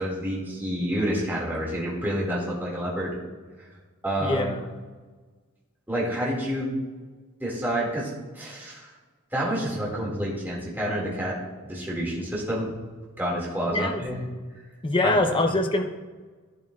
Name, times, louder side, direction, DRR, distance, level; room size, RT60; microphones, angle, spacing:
voice 1, 0.0-3.2 4.0-4.5 5.9-6.8 7.4-8.9 9.3-11.4 11.6-12.7 13.2-14.2 15.0-15.6, equal, 10° right, -5 dB, 2.3 m, -28 dB
voice 2, 4.2-4.5 13.7-14.0 14.8-15.8, left 2 dB, 25° left, 5 dB, 0.8 m, -23 dB
11.5 x 10.5 x 2.5 m, 1.4 s
head